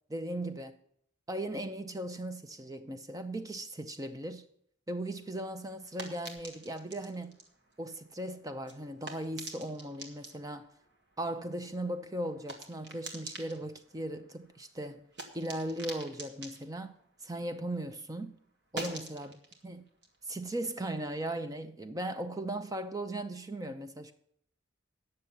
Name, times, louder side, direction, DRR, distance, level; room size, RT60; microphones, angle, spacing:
voice 1, 0.1-0.8 1.3-4.4 4.9-7.3 7.8-10.7 11.2-15.0 15.3-16.9 17.2-18.3 18.7-19.4 19.6-19.8 20.2-24.1, right 1 dB, 15° right, 0.6 m, -38 dB
sound 1, 5.1-17.9 18.2-21.4, right 2 dB, 55° right, 1.6 m, -48 dB
9.7 x 6.7 x 7.0 m
head